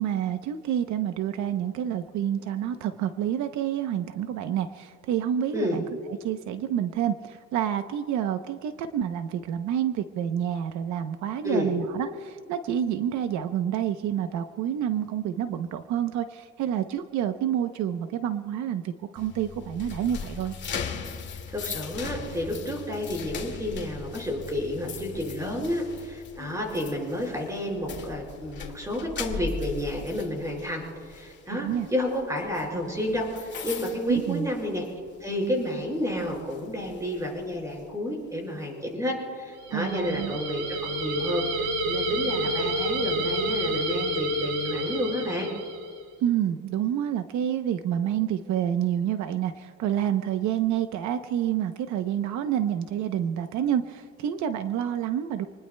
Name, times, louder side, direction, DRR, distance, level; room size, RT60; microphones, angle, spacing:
voice 1, 0.0-5.8 6.2-20.5 31.5-31.9 34.1-34.5 39.7-40.4 46.2-55.5, right 10 dB, 70° right, 9 dB, 0.8 m, -28 dB
sound 1, 19.2-35.1 35.4-35.7 36.2-37.8, left 5 dB, 35° left, 2.1 m, -39 dB
voice 2, 21.5-34.8 35.2-45.5, left 1 dB, 10° right, -1 dB, 4.7 m, -30 dB
sound 2, 39.6-46.0, right 1 dB, 90° right, 3.4 m, -29 dB
27.5 x 20.0 x 2.2 m, 2.2 s
cardioid pair, 145°, 30 cm